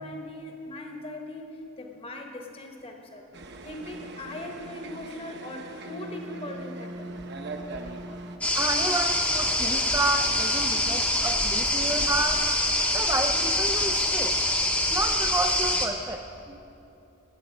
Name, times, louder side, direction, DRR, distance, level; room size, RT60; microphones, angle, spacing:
voice 1, 0.0-3.3 3.6-7.1, left 1 dB, 25° left, 3 dB, 1.0 m, -40 dB
sound 1, 3.3-8.4, right 2 dB, 55° right, 0.9 m, -40 dB
sound 2, 8.4-15.9, left 1 dB, 5° left, 0.7 m, -25 dB
voice 2, 8.6-12.5 12.9-14.4 14.9-16.6, right 2 dB, 15° right, 4 dB, 0.3 m, -30 dB
18.0 x 7.0 x 5.2 m, 2.9 s
head